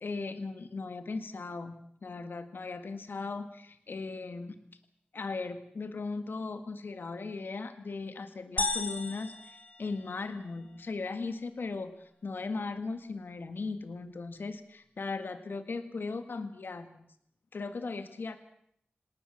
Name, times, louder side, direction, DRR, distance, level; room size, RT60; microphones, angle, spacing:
voice 1, 0.0-4.6 5.1-17.1 17.5-18.4, left 4 dB, 75° left, 10 dB, 1.8 m, -38 dB
sound 1, 8.6-10.5, left 3 dB, 50° left, 2.6 m, -35 dB
27.0 x 18.5 x 7.4 m, 0.70 s
wide cardioid pair, 70°, 4 cm